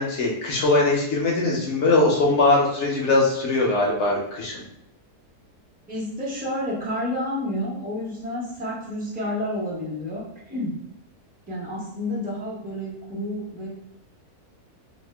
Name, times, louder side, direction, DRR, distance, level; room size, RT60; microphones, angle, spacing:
voice 1, 0.0-4.6, left 2 dB, 60° left, -2 dB, 0.8 m, -21 dB
voice 2, 5.9-10.8 11.5-13.7, left 1 dB, 10° right, -6 dB, 0.4 m, -30 dB
2.7 x 2.1 x 3.2 m, 0.79 s
omnidirectional pair, 1.6 m